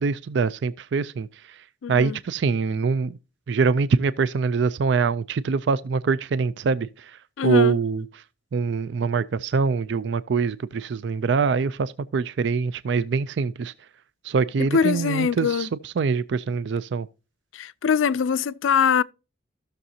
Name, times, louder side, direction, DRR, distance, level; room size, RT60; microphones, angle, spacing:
voice 1, 0.0-1.6 1.9-3.1 3.5-8.1 8.5-13.7 14.2-17.1, right 5 dB, 65° right, 0.4 m, -24 dB
voice 2, 1.8-2.2 7.4-7.8 14.7-15.7 17.5-19.0, left 6 dB, 85° left, 0.4 m, -22 dB
15.0 x 6.6 x 2.8 m
head